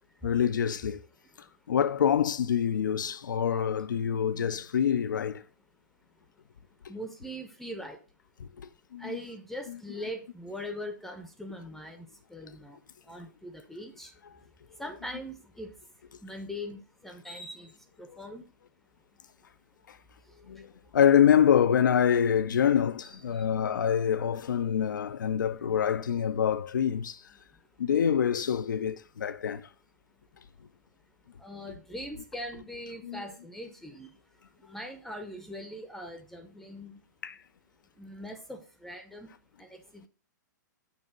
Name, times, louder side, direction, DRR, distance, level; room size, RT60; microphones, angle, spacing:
voice 1, 0.2-1.0 1.7-5.4 8.6-9.2 19.9-20.0 20.5-27.2 27.8-29.7 33.0-33.2 37.2-37.3, left 8 dB, 80° left, 0.5 m, -26 dB
voice 2, 6.9-8.0 9.0-12.8 13.1-14.1 14.8-15.7 16.2-17.7 18.0-18.5 23.0-23.4 31.4-34.1 34.6-37.0 38.0-39.3 39.6-40.1, equal, ahead, 0.7 m, -41 dB
6.7 x 2.9 x 5.6 m
hypercardioid pair, 120°, 10 cm